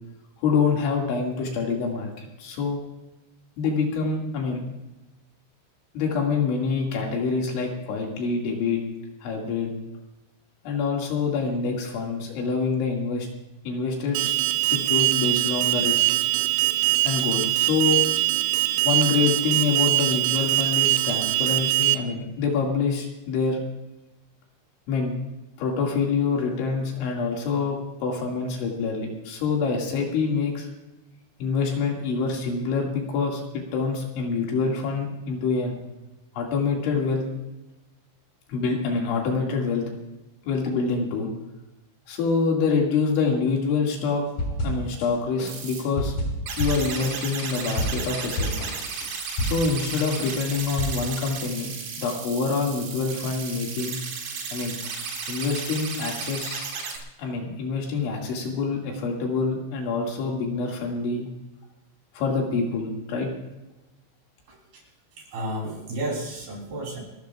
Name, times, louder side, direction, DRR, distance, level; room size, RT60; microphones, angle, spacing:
voice 1, 0.4-2.8 3.6-4.6 5.9-8.8 9.2-9.7 10.6-13.3 13.7-14.4 14.7-16.1 17.0-18.1 18.8-23.6 24.9-25.1 25.6-30.7 31.4-35.8 36.4-37.2 38.5-39.8 40.5-41.3 42.1-44.2 44.6-46.2 46.6-48.5 49.4-51.7 52.0-54.0 54.5-54.8 55.3-56.7 57.2-61.3 62.1-63.3, left 4 dB, 70° left, 0 dB, 4.3 m, -26 dB
Alarm, 14.2-22.0, right 18 dB, 90° right, 3.4 m, -22 dB
sound 1, 44.4-45.1 45.4-49.9 50.2-50.8, equal, 40° left, 4.1 m, -29 dB
sound 2, 45.4-45.8 46.5-57.0, right 5 dB, 75° right, 4.4 m, -34 dB
voice 2, 65.3-67.0, right 1 dB, 50° right, -1 dB, 5.0 m, -31 dB
29.0 x 13.5 x 2.4 m, 1.0 s
omnidirectional pair, 5.9 m